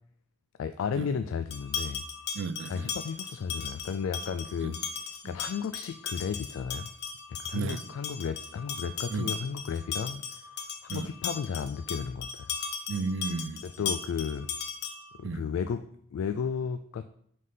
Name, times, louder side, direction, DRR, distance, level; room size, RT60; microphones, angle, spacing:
voice 1, 0.6-2.0 2.7-4.8 5.2-6.9 7.3-10.4 10.8-12.5 13.6-14.5 15.2-17.1, left 6 dB, 85° left, 0.3 m, -33 dB
sound 1, 1.5-15.2, left 6 dB, 55° left, 0.7 m, -37 dB
voice 2, 2.3-2.9 4.6-4.7 7.5-7.9 9.1-9.3 10.9-11.1 12.9-13.9 15.2-15.4, right 4 dB, 60° right, 0.4 m, -34 dB
5.2 x 4.0 x 5.5 m
head